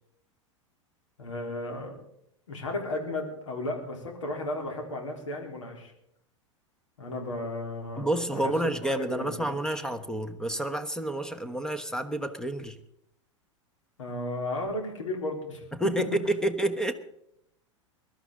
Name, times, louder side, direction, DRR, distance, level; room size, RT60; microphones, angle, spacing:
voice 1, 1.2-2.0 2.5-5.9 7.0-8.6 8.8-9.8 14.0-15.6, left 1 dB, 75° left, 1 dB, 3.9 m, -34 dB
voice 2, 8.0-12.8 15.7-16.9, right 1 dB, 5° left, 10 dB, 1.1 m, -29 dB
22.0 x 12.0 x 3.9 m, 0.74 s
figure-of-eight pair, 90°, 16 cm